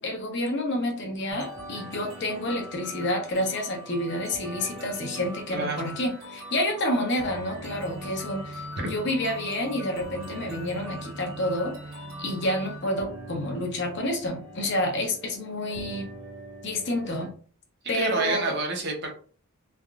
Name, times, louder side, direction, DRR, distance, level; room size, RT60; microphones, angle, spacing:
voice 1, 0.0-11.7 12.2-16.1 16.6-17.3 17.9-18.6, left 1 dB, 50° left, 2 dB, 0.8 m, -29 dB
sound 1, 1.3-17.3, equal, 90° right, 1.3 m, -41 dB
voice 2, 5.5-6.0 8.8-8.9 17.9-19.1, right 3 dB, 50° right, 1 dB, 0.7 m, -29 dB
3.4 x 2.4 x 2.3 m, 0.43 s
head